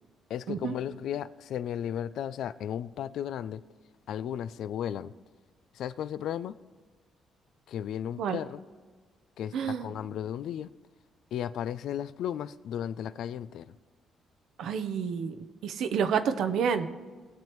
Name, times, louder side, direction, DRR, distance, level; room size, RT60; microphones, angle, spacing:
voice 1, 0.3-3.6 4.1-5.1 5.7-6.6 7.7-8.6 9.4-10.7 11.3-13.7, left 10 dB, 75° left, 15 dB, 0.3 m, -35 dB
voice 2, 9.5-9.9 14.6-15.4 15.6-16.9, right 7 dB, 75° right, 9 dB, 0.7 m, -29 dB
19.0 x 7.3 x 3.1 m, 1.4 s
cardioid pair, 95°, 0 cm